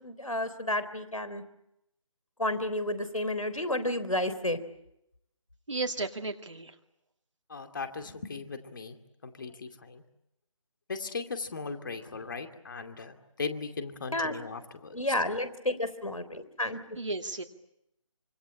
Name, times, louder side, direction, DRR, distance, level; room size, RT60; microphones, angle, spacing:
voice 1, 0.0-1.4 2.4-4.6 14.1-14.3 14.9-16.8, left 1 dB, 80° left, 12 dB, 3.7 m, -31 dB
voice 2, 5.7-6.7 17.0-17.4, right 3 dB, 60° right, 3 dB, 2.1 m, -34 dB
voice 3, 7.5-9.0 9.2-10.0 10.9-15.0, left 4 dB, 40° left, 7 dB, 2.5 m, -38 dB
25.5 x 25.0 x 8.7 m, 0.83 s
figure-of-eight pair, 155°, 17 cm